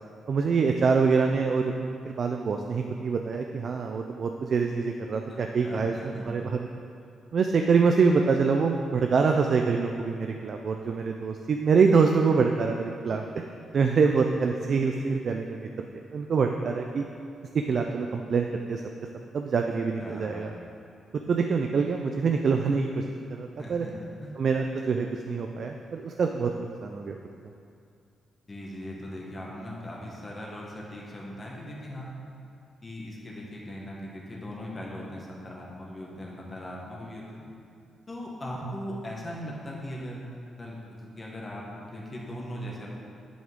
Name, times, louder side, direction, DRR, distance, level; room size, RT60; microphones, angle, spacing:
voice 1, 0.3-6.5 7.3-13.4 13.7-15.7 16.1-17.0 17.7-18.8 19.3-20.5 21.3-23.0 23.3-23.9 24.4-27.2, right 5 dB, 50° right, 3 dB, 0.4 m, -25 dB
voice 2, 5.3-6.5 20.0-20.5 23.6-24.3 28.5-32.1 32.8-37.5 38.1-40.2 40.6-42.9, equal, 25° left, -3 dB, 1.6 m, -39 dB
10.5 x 6.2 x 3.6 m, 2.5 s
cardioid pair, 120°, 0 cm